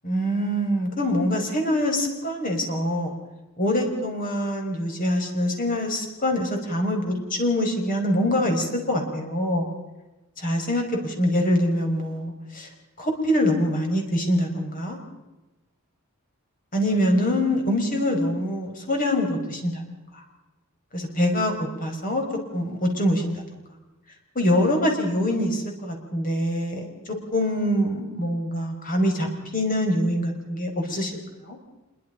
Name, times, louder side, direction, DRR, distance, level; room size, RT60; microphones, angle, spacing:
voice 1, 0.0-3.2 3.6-9.7 10.4-12.7 13.0-15.0 16.7-19.8 20.9-22.2 22.5-23.4 24.4-26.9 27.3-29.3 29.5-31.1 31.5-31.6, left 1 dB, 40° left, 2 dB, 5.5 m, -24 dB
26.5 x 23.0 x 5.3 m, 1.1 s
head